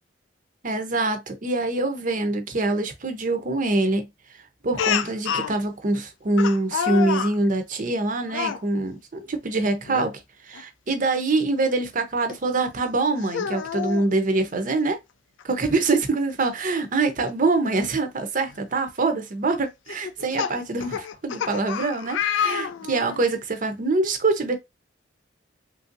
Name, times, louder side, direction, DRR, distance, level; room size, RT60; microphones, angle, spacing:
voice 1, 0.6-4.1 4.6-10.1 10.4-15.0 15.4-24.6, right 3 dB, 45° right, 0.7 m, -24 dB
Speech, 4.8-5.5 6.4-7.3 8.3-8.6 9.9-10.1 10.5-10.6 12.3-12.4 13.2-14.1 15.4-15.5 15.8-15.9 17.8-17.9 18.5-18.8 19.9-23.2, left 8 dB, 75° left, 0.3 m, -28 dB
3.3 x 2.6 x 2.5 m
head